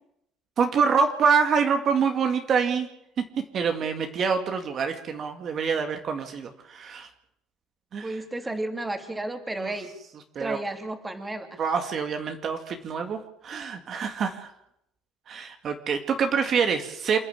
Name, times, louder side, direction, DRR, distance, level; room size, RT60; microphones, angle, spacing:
voice 1, 0.6-2.9 3.5-7.1 7.9-8.2 8.5-8.6 9.6-9.7 10.4-10.6 11.6-14.5 15.3-17.2, right 6 dB, 50° right, 5 dB, 2.1 m, -26 dB
voice 2, 8.0-9.9 10.4-11.6, right 2 dB, 15° right, 6 dB, 2.7 m, -32 dB
27.5 x 10.5 x 9.0 m, 0.80 s
supercardioid pair, 95°, 0 cm